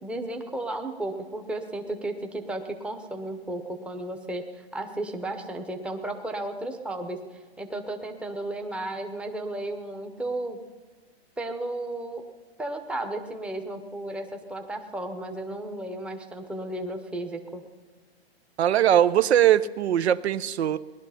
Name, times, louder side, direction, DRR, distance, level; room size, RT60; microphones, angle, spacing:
voice 1, 0.0-7.2 7.6-10.6 11.4-12.2 12.6-17.6, right 1 dB, 5° right, 4 dB, 0.8 m, -34 dB
voice 2, 18.6-20.8, right 10 dB, 80° right, 15 dB, 0.7 m, -21 dB
19.5 x 11.5 x 5.7 m, 1.4 s
hypercardioid pair, 145°, 32 cm